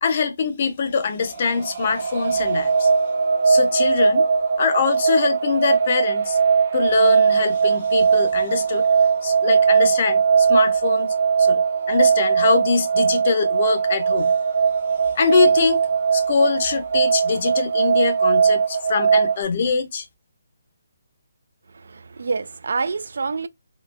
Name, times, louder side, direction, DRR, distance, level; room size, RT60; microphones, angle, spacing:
voice 1, 0.0-2.9 3.5-4.2 4.6-6.4 6.7-8.9 9.2-11.6 11.9-14.3 15.2-15.8 16.1-20.1, left 5 dB, 35° left, 0.6 m, -23 dB
sound 1, 1.3-19.4, right 6 dB, 45° right, 0.7 m, -19 dB
voice 2, 21.7-23.5, right 4 dB, 65° right, 0.3 m, -27 dB
3.7 x 2.4 x 2.4 m
hypercardioid pair, 175°, 0 cm